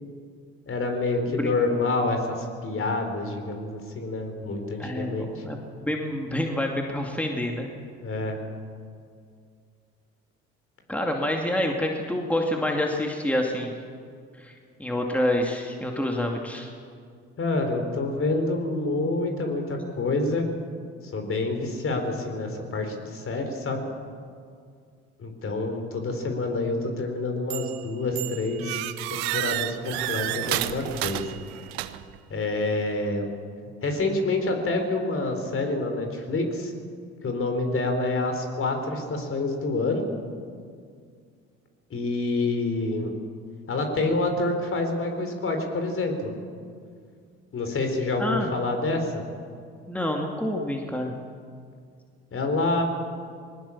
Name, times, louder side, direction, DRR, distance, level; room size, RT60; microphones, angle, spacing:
voice 1, 0.7-5.4 8.0-8.4 17.4-20.5 21.0-23.8 25.2-28.8 29.1-31.4 32.3-33.3 33.6-36.7 37.2-40.1 41.9-43.1 43.7-46.1 47.5-49.2 52.3-52.8, left 2 dB, 45° left, 5 dB, 4.3 m, -27 dB
voice 2, 4.8-7.7 10.9-13.7 14.4-14.5 14.8-16.7 48.2-48.5 49.9-51.1, left 1 dB, 5° left, 1 dB, 2.5 m, -27 dB
sound 1, 27.5-27.8 28.2-32.2, right 16 dB, 90° right, 0.8 m, -31 dB
20.0 x 19.0 x 7.3 m, 2.2 s
supercardioid pair, 70°, 30 cm